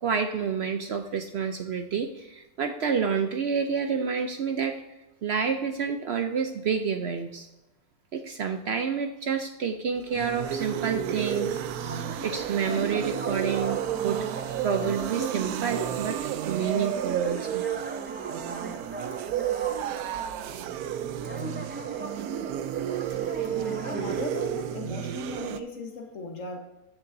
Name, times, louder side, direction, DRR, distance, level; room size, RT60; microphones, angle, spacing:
voice 1, 0.0-4.7 5.2-7.5 8.1-16.2 16.5-17.7 20.4-20.6, right 6 dB, 60° right, 6 dB, 0.7 m, -29 dB
sound 1, 10.0-25.6, right 10 dB, 85° right, 1.1 m, -31 dB
sound 2, 11.9-15.7 16.1-16.2 17.2-21.0 21.2-24.2, right 1 dB, 15° right, 0.3 m, -41 dB
voice 2, 23.4-26.6, left 2 dB, 60° left, 4 dB, 1.5 m, -37 dB
14.0 x 6.7 x 2.6 m, 0.99 s
omnidirectional pair, 1.5 m